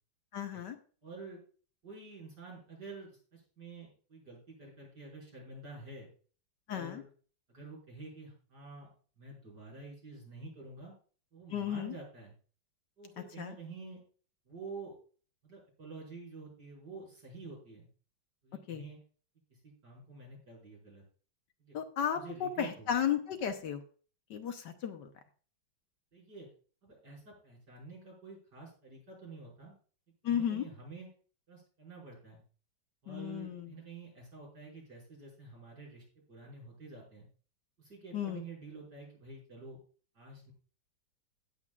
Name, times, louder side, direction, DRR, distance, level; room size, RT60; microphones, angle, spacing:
voice 1, 0.3-0.8 6.7-7.0 11.5-11.9 13.4-13.5 18.7-18.8 21.7-23.8 24.3-25.1 30.2-30.7 33.1-33.7 38.1-38.4, left 9 dB, 65° left, 7 dB, 1.4 m, -34 dB
voice 2, 1.0-1.4 1.8-6.1 6.7-7.0 7.5-8.9 9.2-10.9 11.3-12.3 13.0-14.0 14.5-15.0 15.4-17.9 18.4-19.0 19.6-21.0 21.6-21.8 22.1-22.9 26.1-26.5 26.8-29.7 30.2-31.1 31.5-32.4 33.0-37.3 37.8-39.8 40.1-40.5, right 3 dB, 55° right, -4 dB, 6.3 m, -49 dB
16.5 x 7.8 x 2.4 m, 0.40 s
omnidirectional pair, 2.1 m